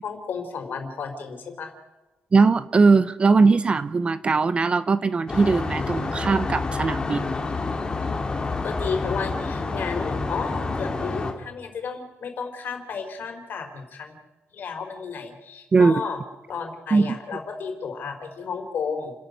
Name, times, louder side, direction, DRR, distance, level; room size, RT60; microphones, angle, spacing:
voice 1, 0.0-1.7 8.6-14.2 14.5-16.2 16.5-19.1, left 5 dB, 50° left, 5 dB, 4.1 m, -32 dB
voice 2, 2.3-7.3 15.7-16.0 16.9-17.1, right 4 dB, 25° right, 15 dB, 0.6 m, -20 dB
sound 1, 5.3-11.3, left 3 dB, 20° left, 2.4 m, -28 dB
30.0 x 11.5 x 8.2 m, 1.1 s
wide cardioid pair, 175°, 4 cm